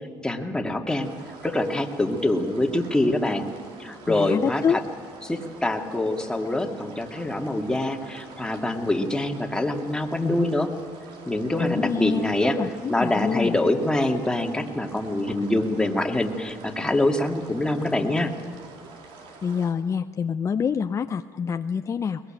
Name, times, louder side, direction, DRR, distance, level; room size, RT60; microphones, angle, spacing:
voice 1, 0.2-1.1 1.4-3.5 3.8-4.8 5.2-10.7 11.3-12.6 12.9-18.3, left 1 dB, 10° left, 3 dB, 2.3 m, -25 dB
sound 1, 1.0-19.7, right 4 dB, 75° right, 3.7 m, -46 dB
voice 2, 4.1-4.8 11.6-13.5 19.4-22.2, left 6 dB, 35° left, 9 dB, 0.6 m, -26 dB
21.5 x 20.5 x 9.0 m, 2.1 s
cardioid pair, 105°, 9 cm